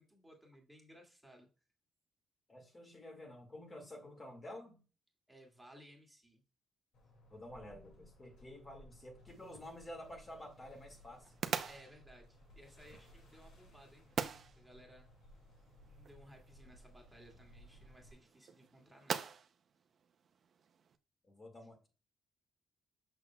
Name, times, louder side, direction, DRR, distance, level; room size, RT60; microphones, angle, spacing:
voice 1, 0.0-1.5 5.3-6.4 11.7-14.0 14.4-15.1 15.9-19.2, equal, 5° right, 1.9 m, -60 dB
voice 2, 2.5-4.8 7.3-11.3 21.2-21.9, left 1 dB, 30° left, 2.1 m, -50 dB
sound 1, 6.9-18.1, equal, 75° left, 2.3 m, -61 dB
sound 2, 9.3-21.0, right 7 dB, 55° right, 0.7 m, -46 dB
6.7 x 6.1 x 2.3 m
cardioid pair, 90°, 0 cm